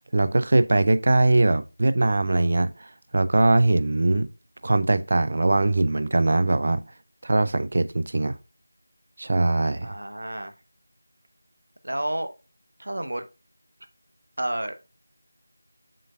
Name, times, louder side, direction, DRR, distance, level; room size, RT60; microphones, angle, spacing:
voice 1, 0.1-4.3 4.6-6.8 7.2-8.4 9.2-9.9, right 2 dB, 45° right, 0.5 m, -21 dB
voice 2, 9.8-10.5 11.8-12.3 12.8-13.3 14.4-14.8, right 1 dB, 65° right, 0.9 m, -30 dB
7.6 x 5.3 x 2.3 m
figure-of-eight pair, 170°, 0 cm